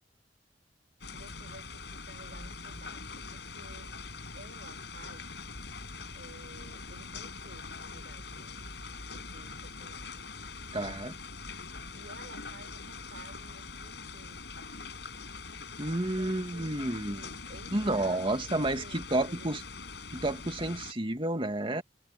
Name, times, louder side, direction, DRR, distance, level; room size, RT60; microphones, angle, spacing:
sound 1, 1.0-20.9, left 4 dB, 70° left, 5.9 m, -43 dB
voice 1, 1.1-3.9 4.3-5.3 6.1-8.7 9.1-10.5 11.9-14.8 16.2-19.6, right 2 dB, 70° right, 5.9 m, -54 dB
voice 2, 10.7-11.2 15.8-17.2 17.7-19.6 20.1-21.8, right 1 dB, 30° right, 2.3 m, -30 dB
head